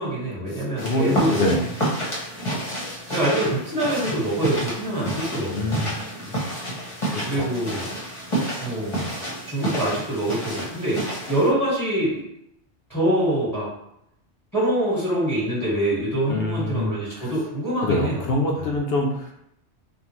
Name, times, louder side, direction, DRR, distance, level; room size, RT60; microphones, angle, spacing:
voice 1, 0.0-1.4 3.1-5.9 7.3-7.9 8.6-9.1 9.5-12.2 12.9-13.7 14.5-18.2 18.5-18.7, right 1 dB, ahead, -8 dB, 1.2 m, -25 dB
voice 2, 0.5-1.6 5.5-6.0 7.1-7.5 16.3-17.3 17.8-19.4, left 1 dB, 65° left, 1 dB, 0.8 m, -25 dB
sound 1, 0.8-11.5, right 1 dB, 30° left, 0.9 m, -29 dB
3.6 x 2.4 x 3.0 m, 0.77 s
omnidirectional pair, 1.2 m